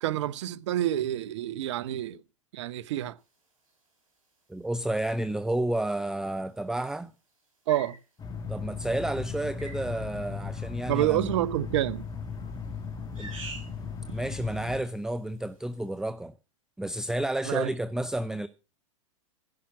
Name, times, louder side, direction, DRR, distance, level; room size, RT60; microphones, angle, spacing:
voice 1, 0.0-2.2 2.5-3.1 7.7-8.0 10.9-12.1 17.5-17.7, right 13 dB, 60° right, 0.8 m, -28 dB
voice 2, 4.5-7.1 8.5-11.3 13.2-13.3 14.1-16.3 16.8-18.5, right 1 dB, 5° right, 0.5 m, -31 dB
sound 1, 5.5-5.6 7.7-8.0 9.6-9.9 12.0-12.4 13.1-13.8 14.1-14.9, right 3 dB, 90° right, 5.3 m, -45 dB
sound 2, 8.2-14.8, left 5 dB, 20° left, 1.9 m, -37 dB
15.5 x 5.8 x 5.9 m
hypercardioid pair, 100°, 17 cm